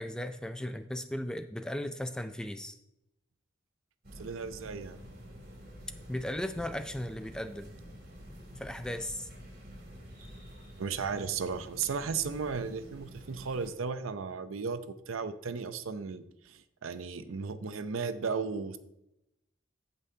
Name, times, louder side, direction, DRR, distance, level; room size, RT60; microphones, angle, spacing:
voice 1, 0.0-2.8 6.1-7.7 8.6-9.3, left 1 dB, 5° left, 9 dB, 0.3 m, -36 dB
sound 1, 4.0-13.7, equal, 50° right, 2.4 m, -49 dB
voice 2, 4.2-5.0 10.8-18.8, right 5 dB, 90° right, 11 dB, 0.6 m, -35 dB
14.5 x 5.5 x 2.7 m, 0.86 s
head